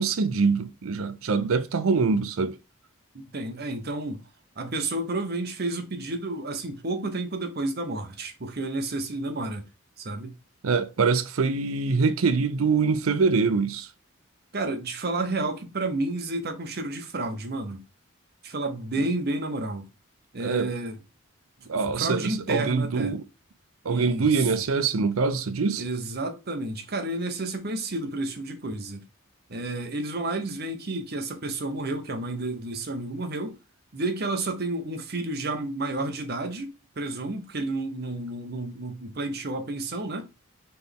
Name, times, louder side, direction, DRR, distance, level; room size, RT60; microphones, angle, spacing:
voice 1, 0.0-2.6 10.6-13.9 20.4-20.7 21.7-23.2 23.8-25.8, right 4 dB, 85° right, 0.5 m, -24 dB
voice 2, 3.1-4.2 4.6-9.6 10.0-10.3 14.5-17.8 18.4-19.9 20.3-21.0 21.6-23.2 23.9-24.5 25.8-29.0 29.5-33.6 33.9-40.3, right 2 dB, 50° right, 0.9 m, -31 dB
4.2 x 3.4 x 3.5 m
head